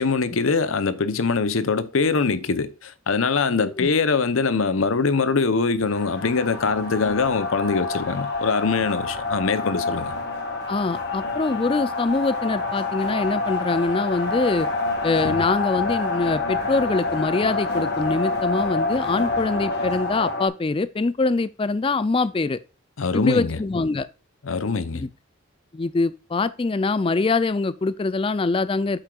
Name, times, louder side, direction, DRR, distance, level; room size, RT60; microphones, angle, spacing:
voice 1, 0.0-10.1 15.2-15.4 23.0-23.6 24.4-25.0, left 4 dB, 80° left, 0.7 m, -23 dB
sound 1, 5.8-20.5, left 3 dB, 50° left, 1.7 m, -27 dB
voice 2, 10.7-14.7 15.0-22.6 23.1-24.1 24.9-25.1 25.7-29.0, left 3 dB, 25° left, 0.4 m, -24 dB
8.9 x 7.6 x 2.4 m
head